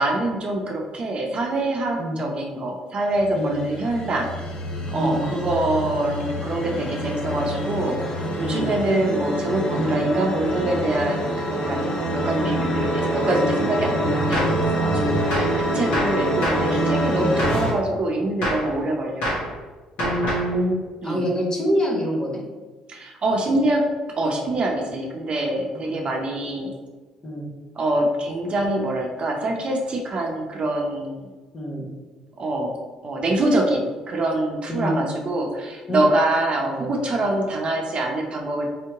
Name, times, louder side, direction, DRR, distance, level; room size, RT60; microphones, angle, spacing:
voice 1, 0.0-4.3 4.9-13.9 14.3-14.5 14.7-14.9 15.2-19.2 21.0-21.3 22.9-23.8 24.2-26.8 27.8-31.3 32.4-32.8 33.0-38.7, right 1 dB, 45° right, 1 dB, 0.7 m, -25 dB
sound 1, 3.1-17.7, equal, 50° left, 1.0 m, -26 dB
voice 2, 3.3-3.7 4.9-5.2 8.4-8.7 9.8-10.0 13.9-14.2 14.8-15.1 17.1-17.4 20.0-22.4 25.7-26.0 27.2-27.5 31.5-31.9 34.7-35.0 35.9-36.0 36.6-36.9, equal, 35° left, -2 dB, 1.2 m, -26 dB
Gunshot gunfire, 14.3-14.6 15.3-15.6 15.9-16.7 17.4-17.7 18.4-18.7 19.2-19.5 20.0-20.5, equal, 70° left, 1.3 m, -26 dB
3.6 x 2.8 x 3.5 m, 1.3 s
hypercardioid pair, 55°, 2 cm